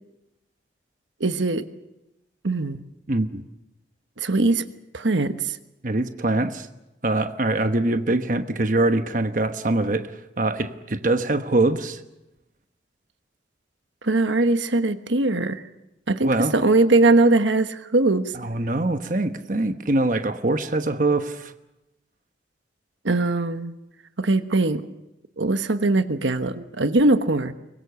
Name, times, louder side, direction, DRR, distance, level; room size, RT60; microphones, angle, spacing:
voice 1, 1.2-1.7 2.4-2.8 4.2-4.6 4.9-5.6 14.0-15.6 16.1-18.3 23.0-23.7 24.2-24.8 25.4-27.5, right 2 dB, 85° right, 9 dB, 1.2 m, -21 dB
voice 2, 3.1-3.4 5.8-6.7 7.0-12.0 16.2-16.5 18.3-21.5, right 2 dB, 45° right, 8 dB, 1.1 m, -23 dB
24.0 x 21.5 x 7.0 m, 0.96 s
head